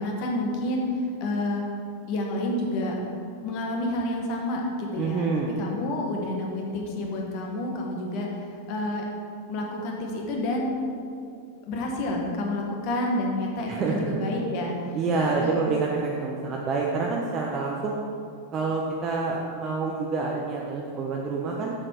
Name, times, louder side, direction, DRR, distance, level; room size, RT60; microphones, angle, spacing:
voice 1, 0.0-1.6 2.1-3.0 3.4-5.3 5.6-9.0 9.5-10.8 11.7-14.8 15.1-15.6, left 1 dB, 45° left, 0 dB, 1.4 m, -29 dB
voice 2, 5.0-5.5 13.7-14.3 14.9-18.0 18.5-21.7, right 4 dB, 30° right, -2 dB, 0.8 m, -27 dB
7.6 x 6.5 x 4.5 m, 2.4 s
figure-of-eight pair, 90°, 0 cm